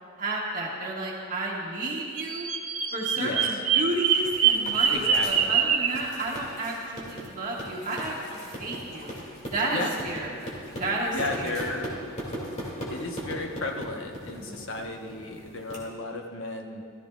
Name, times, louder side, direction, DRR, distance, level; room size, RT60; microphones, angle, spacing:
voice 1, 0.2-2.5 2.9-9.1 9.5-10.5 10.8-11.6 14.4-14.6, right 2 dB, 40° right, -3 dB, 1.6 m, -32 dB
Bird vocalization bird call bird song, 2.2-6.0, right 7 dB, 75° right, 0.7 m, -24 dB
sound 1, 3.9-15.8, equal, 35° left, 2.2 m, -39 dB
voice 2, 4.9-5.6 9.7-9.9 11.1-12.0 12.7-16.8, left 2 dB, 65° left, 2 dB, 1.0 m, -34 dB
14.0 x 14.0 x 2.4 m, 2.6 s
head